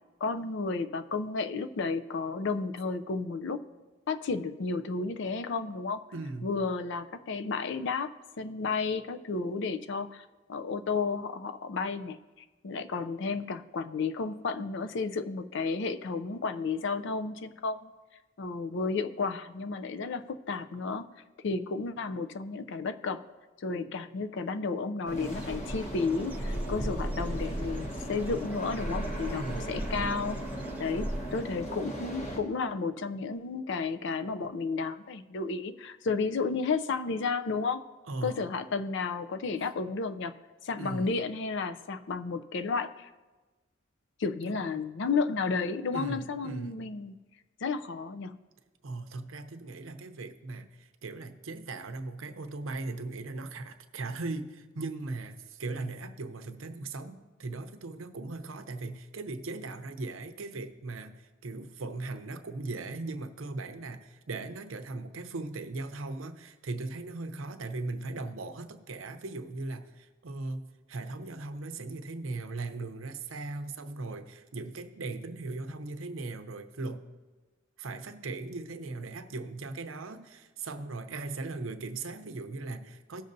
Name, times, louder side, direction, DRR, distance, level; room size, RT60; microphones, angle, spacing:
voice 1, 0.2-3.6 4.1-6.0 6.4-8.1 8.4-12.2 12.6-17.9 18.4-21.1 21.4-23.2 23.6-30.4 30.8-37.9 38.2-40.3 40.6-43.1 44.2-47.1 47.6-48.4, left 4 dB, 60° left, 11 dB, 0.5 m, -32 dB
voice 2, 6.1-6.6 29.3-29.7 38.1-38.5 40.8-41.2 44.4-44.9 45.9-46.8 48.8-77.1 77.8-83.2, right 3 dB, 75° right, 8 dB, 0.7 m, -38 dB
sound 1, 25.0-32.4, right 1 dB, 35° left, 1.2 m, -38 dB
Dog / Bird, 25.1-31.4, right 1 dB, 10° right, 0.5 m, -37 dB
17.5 x 6.5 x 2.6 m, 1.3 s
head